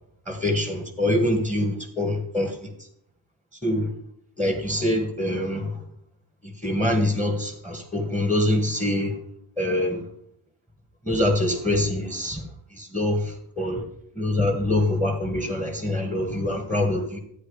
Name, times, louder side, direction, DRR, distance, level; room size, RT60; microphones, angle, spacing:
voice 1, 0.3-2.7 3.6-3.9 4.4-5.8 6.4-9.2 9.6-10.0 11.0-12.4 12.7-13.8 14.2-17.2, left 1 dB, 5° left, 3 dB, 1.8 m, -24 dB
13.0 x 9.1 x 4.9 m, 0.74 s
cardioid pair, 145°, 49 cm